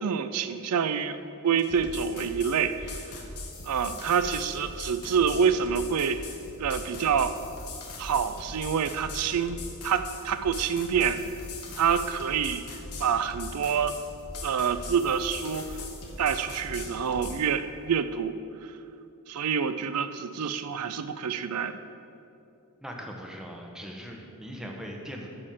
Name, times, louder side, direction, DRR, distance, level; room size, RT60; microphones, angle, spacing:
voice 1, 0.0-1.2 1.4-2.9 3.6-6.2 6.6-7.3 8.0-11.2 11.8-12.6 13.0-14.0 14.4-15.8 16.2-18.3 19.3-21.8, right 7 dB, 90° right, 11 dB, 0.4 m, -27 dB
sound 1, 1.6-17.4, left 2 dB, 85° left, 1.5 m, -40 dB
voice 2, 22.8-25.3, equal, 5° right, 0 dB, 1.1 m, -40 dB
12.0 x 4.3 x 7.4 m, 2.6 s
head